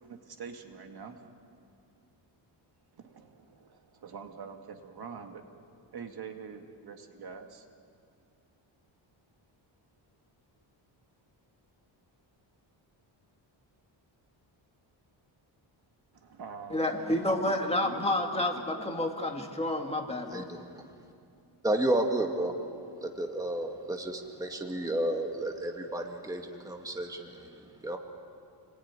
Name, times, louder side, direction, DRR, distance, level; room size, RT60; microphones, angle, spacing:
voice 1, 0.0-1.3 2.9-5.4 5.9-7.7 16.2-16.9 17.3-17.6 17.8-18.5 18.7-19.0, right 6 dB, 50° right, 4 dB, 2.1 m, -45 dB
voice 2, 16.7-20.5, left 1 dB, 15° left, 2 dB, 2.1 m, -29 dB
voice 3, 20.3-20.9 21.6-22.5 23.0-28.0, right 1 dB, 5° right, 2 dB, 1.8 m, -32 dB
29.0 x 20.5 x 9.7 m, 2.4 s
wide cardioid pair, 160°, 47 cm